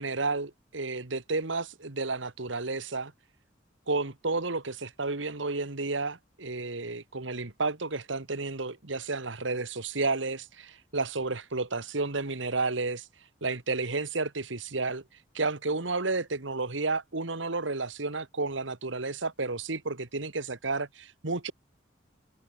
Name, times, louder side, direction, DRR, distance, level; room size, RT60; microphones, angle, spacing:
voice 1, 0.0-3.1 3.9-13.1 13.4-15.0 15.3-21.5, right 3 dB, 80° right, 1.8 m, -31 dB
head